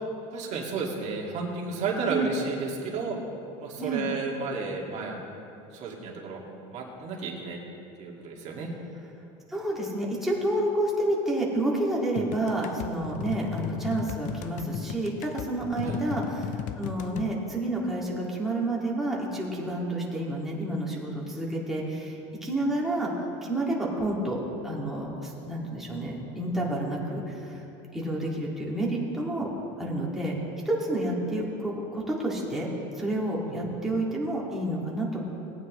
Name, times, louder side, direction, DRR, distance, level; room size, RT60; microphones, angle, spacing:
voice 1, 0.3-3.2 3.6-5.2 5.7-7.6 8.0-8.7 13.3-13.6 15.8-16.0 33.5-33.7, right 4 dB, 45° right, -1 dB, 2.0 m, -32 dB
voice 2, 2.0-2.3 3.8-4.1 9.5-23.1 23.4-27.6 27.9-29.5 29.8-30.3 30.7-32.7 33.0-35.2, right 1 dB, ahead, -5 dB, 2.0 m, -29 dB
sound 1, 12.2-17.3, left 9 dB, 50° left, 0.5 m, -36 dB
18.0 x 9.2 x 3.1 m, 2.9 s
supercardioid pair, 130°, 16 cm